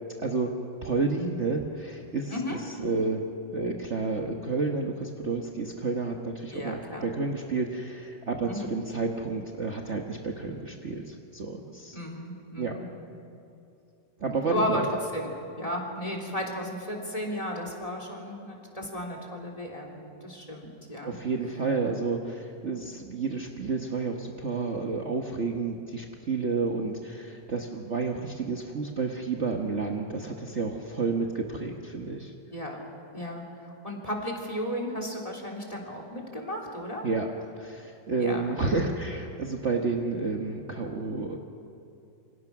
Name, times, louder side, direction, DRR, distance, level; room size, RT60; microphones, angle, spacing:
voice 1, 0.2-0.5 0.8-3.2 3.5-12.0 12.6-12.7 14.2-14.9 21.0-32.3 37.0-37.3 37.6-41.4, right 4 dB, 40° right, 1 dB, 1.5 m, -30 dB
voice 2, 6.5-7.1 8.4-8.7 11.9-12.9 14.5-21.2 32.5-32.8 33.1-37.0 38.2-38.5, left 1 dB, 20° left, 1 dB, 3.5 m, -34 dB
28.0 x 24.5 x 6.0 m, 2.7 s
omnidirectional pair, 2.0 m